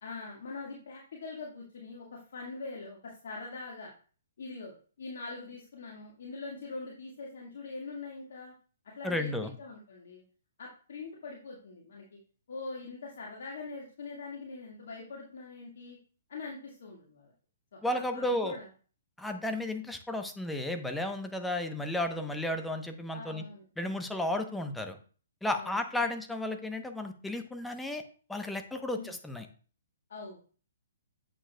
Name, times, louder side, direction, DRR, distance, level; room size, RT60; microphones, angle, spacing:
voice 1, 0.0-3.9 4.4-8.5 9.0-10.2 10.6-12.2 12.5-16.0 16.3-17.3 17.7-18.7 23.1-23.7 25.5-26.1 28.9-29.1 30.1-30.4, left 3 dB, 65° left, -2 dB, 1.8 m, -43 dB
voice 2, 9.0-9.5 17.8-18.6 19.2-23.4 23.8-25.0 25.4-28.0 28.3-29.5, left 1 dB, 5° left, 5 dB, 0.9 m, -33 dB
8.8 x 7.2 x 2.3 m, 0.41 s
figure-of-eight pair, 125°, 0 cm